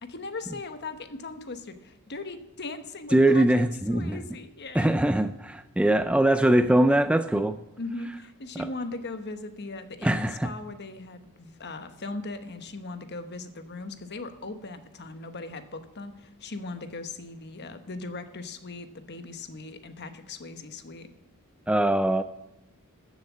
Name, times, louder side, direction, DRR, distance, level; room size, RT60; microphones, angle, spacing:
voice 1, 0.0-3.6 3.9-5.0 7.3-7.4 7.8-21.1, left 3 dB, 50° left, 9 dB, 1.1 m, -39 dB
voice 2, 3.1-4.2 4.7-7.5 8.6-8.7 10.0-10.5 21.7-22.2, right 1 dB, 5° right, 10 dB, 0.3 m, -22 dB
14.0 x 7.2 x 7.3 m, 0.96 s
head